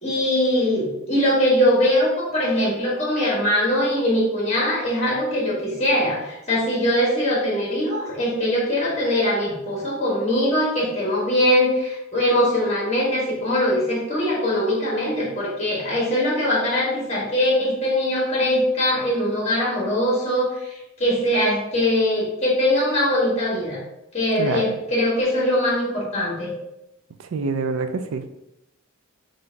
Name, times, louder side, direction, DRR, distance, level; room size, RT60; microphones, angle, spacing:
voice 1, 0.0-23.8 24.1-26.5, left 1 dB, 30° left, -5 dB, 1.6 m, -22 dB
voice 2, 27.3-28.3, right 4 dB, 75° right, 8 dB, 0.4 m, -25 dB
3.8 x 2.6 x 4.4 m, 0.88 s
head